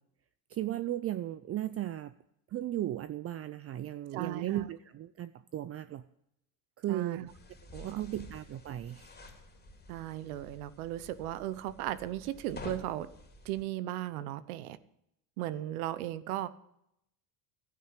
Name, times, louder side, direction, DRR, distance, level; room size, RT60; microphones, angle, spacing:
voice 1, 0.5-2.1 2.5-6.0 6.8-7.2 7.8-9.1, right 13 dB, 35° right, 14 dB, 0.5 m, -36 dB
voice 2, 4.1-4.7 6.9-7.3 7.7-8.0 9.9-13.1 13.4-14.8 15.4-16.5, right 13 dB, 85° right, 16 dB, 1.0 m, -36 dB
sound 1, 7.3-13.6, left 2 dB, 20° left, 3.1 m, -50 dB
11.5 x 9.3 x 7.5 m, 0.78 s
supercardioid pair, 95°, 42 cm